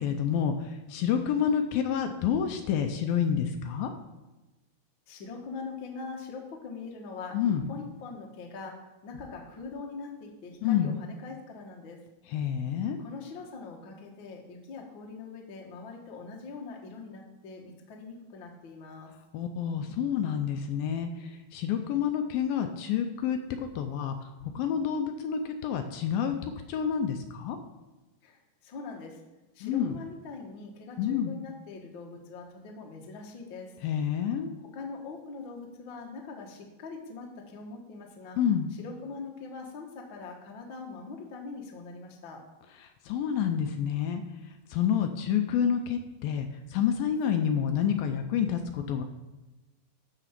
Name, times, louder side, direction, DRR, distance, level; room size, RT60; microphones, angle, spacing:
voice 1, 0.0-3.9 7.3-7.7 10.6-11.0 12.3-13.0 19.3-27.6 29.6-30.0 31.0-31.4 33.8-34.5 38.4-38.7 42.8-44.2 44.7-49.0, left 8 dB, 80° left, 6 dB, 2.3 m, -28 dB
voice 2, 5.1-8.7 9.0-12.0 13.0-19.1 28.2-29.2 29.5-33.7 34.6-38.4 38.7-42.4, left 4 dB, 55° left, 0 dB, 1.4 m, -42 dB
13.0 x 4.8 x 5.9 m, 1.1 s
omnidirectional pair, 4.4 m